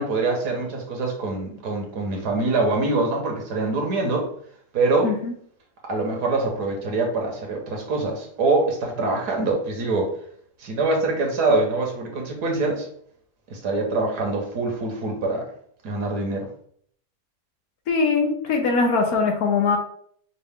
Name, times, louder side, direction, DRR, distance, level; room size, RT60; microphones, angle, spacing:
voice 1, 0.0-4.3 4.7-5.1 5.9-10.1 10.6-12.9 13.5-15.4 15.8-16.5, right 3 dB, 80° right, 1 dB, 1.6 m, -24 dB
voice 2, 5.0-5.3 17.9-19.8, left 4 dB, 70° left, 2 dB, 1.4 m, -21 dB
5.3 x 2.5 x 3.6 m, 0.62 s
omnidirectional pair, 1.7 m